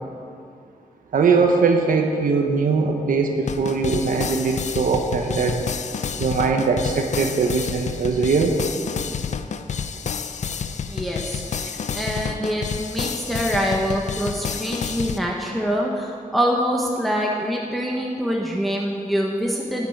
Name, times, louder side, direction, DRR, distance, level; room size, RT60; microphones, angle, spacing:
voice 1, 1.1-5.6 6.2-8.6 11.6-11.7, right 4 dB, 80° right, 3 dB, 1.1 m, -21 dB
sound 1, 3.5-15.2, left 6 dB, 60° left, 0.5 m, -29 dB
voice 2, 10.9-19.9, equal, ahead, -2 dB, 1.0 m, -25 dB
11.5 x 7.3 x 9.3 m, 2.3 s
wide cardioid pair, 170°, 14 cm